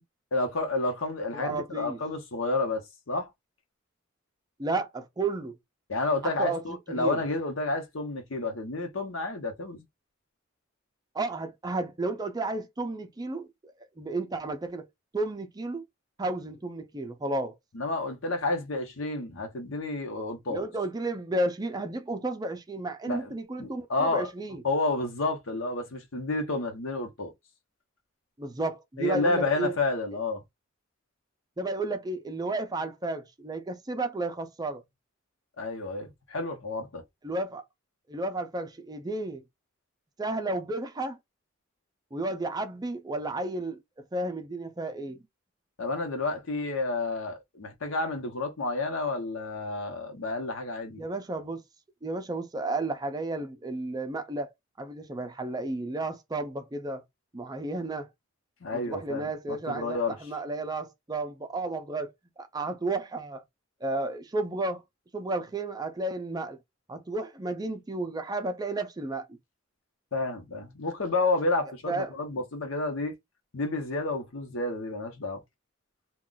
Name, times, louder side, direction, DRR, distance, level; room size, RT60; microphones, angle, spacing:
voice 1, 0.3-3.3 5.9-9.8 17.7-20.6 23.1-23.3 23.6-24.3 24.6-27.3 29.0-30.4 35.6-37.0 45.8-51.0 58.6-60.1 70.1-73.2 73.5-75.4, left 2 dB, 80° left, 0.9 m, -30 dB
voice 2, 1.3-2.0 4.6-5.6 6.2-7.2 11.1-14.9 15.1-15.8 16.2-17.6 20.5-24.6 28.4-29.8 31.6-34.8 37.2-37.6 38.1-39.4 40.2-41.2 42.1-45.2 51.0-51.6 52.0-54.5 54.8-57.0 57.3-58.1 58.7-63.4 63.8-64.8 65.1-66.6 66.9-69.4 71.9-72.4, right 2 dB, 20° right, 0.4 m, -32 dB
2.4 x 2.3 x 3.8 m
head